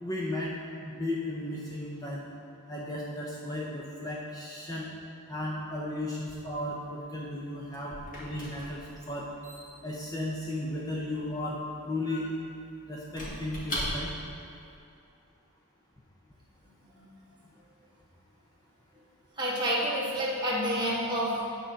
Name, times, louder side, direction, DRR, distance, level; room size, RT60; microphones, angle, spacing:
voice 1, 0.0-0.5 0.8-2.3 2.7-4.9 5.3-9.3 9.8-12.2 12.9-14.1, left 1 dB, 20° left, -4 dB, 0.7 m, -35 dB
Squeak / Wood, 7.2-14.4, equal, 40° left, 1.9 m, -40 dB
voice 2, 19.4-21.5, equal, 20° right, -6 dB, 1.7 m, -29 dB
9.3 x 4.5 x 6.3 m, 2.6 s
head